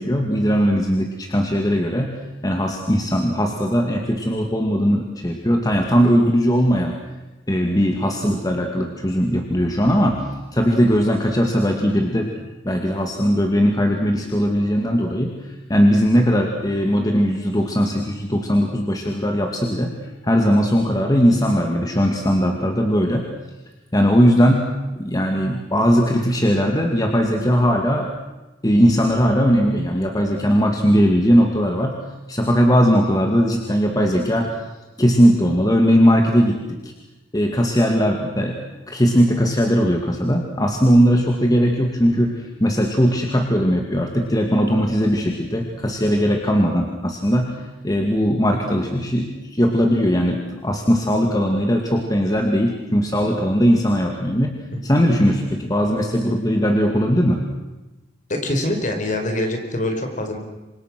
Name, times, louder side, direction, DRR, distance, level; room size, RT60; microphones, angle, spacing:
voice 1, 0.0-7.0 7.5-12.3 12.6-19.9 20.2-23.3 23.9-28.1 28.6-31.9 32.3-34.5 35.0-36.9 37.3-38.6 38.9-54.6 54.8-57.4, equal, 20° left, 2 dB, 2.3 m, -19 dB
voice 2, 58.3-60.4, left 1 dB, 45° left, 4 dB, 4.8 m, -24 dB
29.0 x 25.0 x 6.3 m, 1.1 s
head